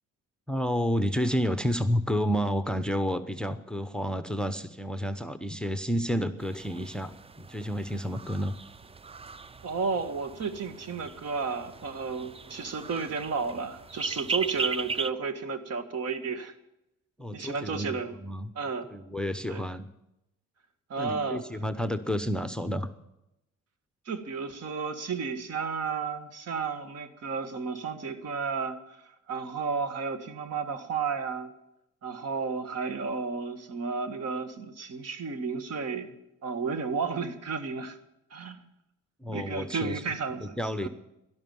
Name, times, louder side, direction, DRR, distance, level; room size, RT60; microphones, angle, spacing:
voice 1, 0.5-7.1 7.4-8.5 17.2-18.5 18.9-19.9 21.0-22.9 39.2-40.0 40.4-40.9, equal, 5° left, 12 dB, 0.8 m, -30 dB
sound 1, 6.4-15.1, right 4 dB, 20° right, 0.5 m, -38 dB
voice 2, 9.6-16.5 17.3-18.1 18.6-18.9 19.5-19.6 20.9-21.4 24.1-28.8 29.3-31.5 32.0-36.1 36.4-38.0 38.3-38.6 39.3-40.9, right 5 dB, 55° right, 10 dB, 1.7 m, -32 dB
12.5 x 12.0 x 9.4 m, 0.87 s
cardioid pair, 90°, 30 cm